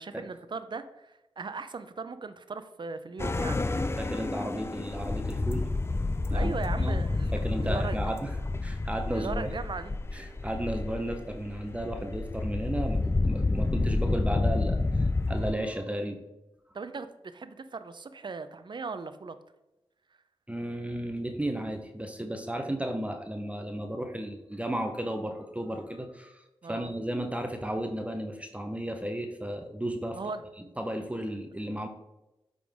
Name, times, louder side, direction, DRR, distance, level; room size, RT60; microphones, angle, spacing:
voice 1, 0.0-3.6 6.3-8.1 9.1-9.9 16.7-19.4 26.6-26.9 30.1-30.4 31.2-31.3, right 4 dB, 50° right, 11 dB, 0.6 m, -38 dB
sound 1, 3.2-15.5, left 3 dB, 25° left, 0.4 m, -29 dB
voice 2, 4.0-5.7 6.3-7.0 7.3-8.4 8.6-9.5 10.1-16.2 20.5-26.4 26.7-30.2 30.8-31.9, right 1 dB, 15° right, 5 dB, 0.8 m, -34 dB
8.5 x 3.8 x 3.5 m, 0.97 s
cardioid pair, 45°, 10 cm